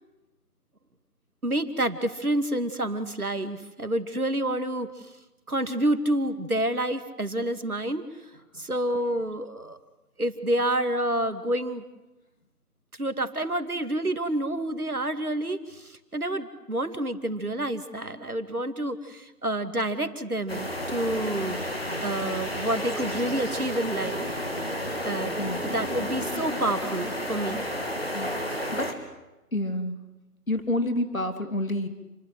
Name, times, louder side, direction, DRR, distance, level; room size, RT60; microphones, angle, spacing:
voice 1, 1.4-4.9 5.5-8.0 8.6-9.8 10.2-11.8 13.0-21.6 22.0-24.3 24.7-25.4 25.7-27.7 28.6-28.7, right 1 dB, 65° right, 9 dB, 2.6 m, -28 dB
sound 1, 20.5-28.9, equal, 40° left, 3.1 m, -31 dB
voice 2, 29.5-30.0 30.5-31.9, left 1 dB, 60° left, 8 dB, 3.2 m, -28 dB
29.5 x 22.0 x 8.0 m, 1.0 s
figure-of-eight pair, 180°, 47 cm